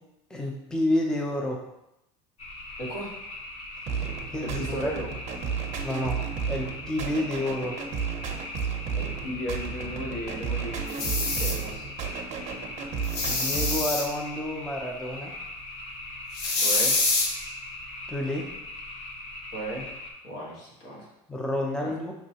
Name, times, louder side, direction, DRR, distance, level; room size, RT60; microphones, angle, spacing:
voice 1, 0.3-1.6 4.3-4.9 5.8-6.2 6.5-7.8 13.2-15.4 18.1-18.5 21.3-22.1, left 1 dB, 5° left, 0 dB, 0.5 m, -29 dB
sound 1, 2.4-20.1, left 2 dB, 40° left, 1.0 m, -40 dB
voice 2, 2.8-3.1 4.4-5.1 8.9-11.9 16.6-16.9 19.5-19.9 20.2-21.1 21.8-21.9, right 1 dB, 70° left, -3 dB, 1.6 m, -35 dB
sound 2, 3.9-13.9, right 6 dB, 45° right, 0.6 m, -33 dB
sound 3, 10.9-11.5 13.0-14.0 16.3-17.3, left 3 dB, 85° left, 0.9 m, -25 dB
5.8 x 3.2 x 2.8 m, 0.86 s
supercardioid pair, 125°, 16 cm